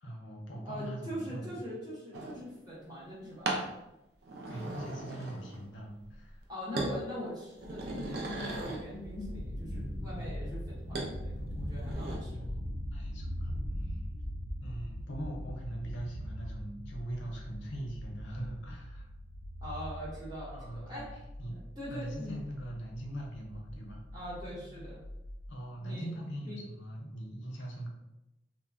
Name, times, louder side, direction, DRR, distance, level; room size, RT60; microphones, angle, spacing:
voice 1, 0.0-1.6 4.5-6.4 12.4-12.5 12.9-13.5 13.8-14.0 14.6-19.1 20.5-21.0 21.4-21.6 21.9-24.0 25.5-27.9, right 1 dB, 90° left, -1 dB, 0.6 m, -41 dB
voice 2, 0.6-3.6 6.5-12.5 19.6-21.1 21.8-22.4 24.1-25.0 25.8-26.1 26.4-26.6, equal, 20° right, -8 dB, 0.9 m, -42 dB
sound 1, 2.1-2.4 3.5-3.7 4.2-5.7 6.0-6.4 6.8-7.0 7.4-8.9 11.0-11.1 11.6-12.2, right 2 dB, 60° right, 0.4 m, -37 dB
sound 2, 7.6-25.5, equal, 40° left, 0.3 m, -41 dB
3.1 x 2.0 x 2.4 m, 0.91 s
head